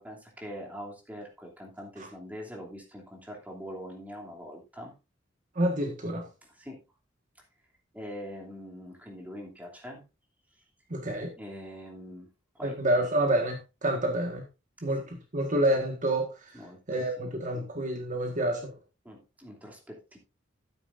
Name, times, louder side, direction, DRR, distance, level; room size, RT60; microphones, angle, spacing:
voice 1, 0.0-4.9 6.6-6.8 7.9-10.0 11.4-12.3 12.5-12.8 16.5-17.7 19.0-20.2, equal, 10° right, 0 dB, 2.9 m, -43 dB
voice 2, 5.5-6.2 10.9-11.3 12.6-14.4 14.8-16.5 16.9-18.7, right 1 dB, 40° right, 3 dB, 1.7 m, -28 dB
12.5 x 9.2 x 2.6 m, 0.27 s
head